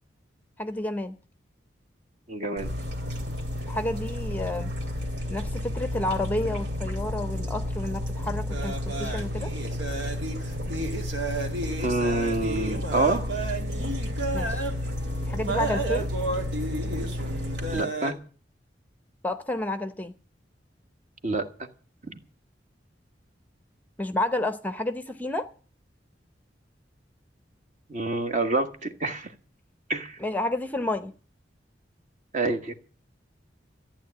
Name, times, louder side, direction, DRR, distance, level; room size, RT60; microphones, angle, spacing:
voice 1, 0.6-1.2 3.7-4.7 5.3-9.5 14.3-14.7 15.2-16.1 19.2-20.1 24.0-25.5 30.2-31.1, left 1 dB, 10° left, 11 dB, 0.7 m, -30 dB
voice 2, 2.3-2.7 11.8-13.3 17.7-18.2 21.2-21.7 22.1-22.2 27.9-29.3 29.9-30.2 32.3-32.7, right 2 dB, 45° right, 7 dB, 1.5 m, -27 dB
sound 1, 2.6-17.8, left 1 dB, 65° right, 2.7 m, -32 dB
sound 2, 8.5-18.1, right 2 dB, 85° right, 2.2 m, -33 dB
14.5 x 9.0 x 8.4 m, 0.41 s
head